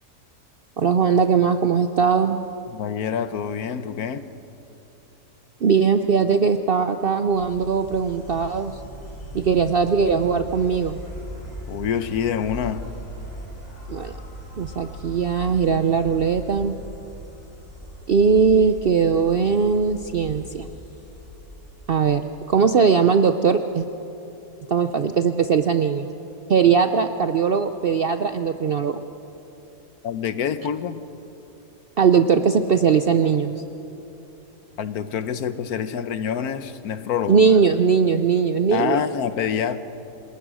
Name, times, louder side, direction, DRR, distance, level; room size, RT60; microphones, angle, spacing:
voice 1, 0.8-2.4 5.6-8.7 9.3-11.0 13.9-14.2 14.6-16.7 18.1-20.7 21.9-22.2 22.5-23.9 24.7-26.1 26.5-29.0 32.0-33.6 37.3-39.0, right 6 dB, 60° right, 8 dB, 0.6 m, -20 dB
voice 2, 2.7-4.3 11.7-12.8 30.0-31.0 34.8-37.4 38.7-39.8, left 8 dB, 70° left, 12 dB, 1.3 m, -26 dB
Insect, 7.2-22.3, equal, 25° left, 7.8 m, -39 dB
27.0 x 19.5 x 6.2 m, 3.0 s
omnidirectional pair, 1.7 m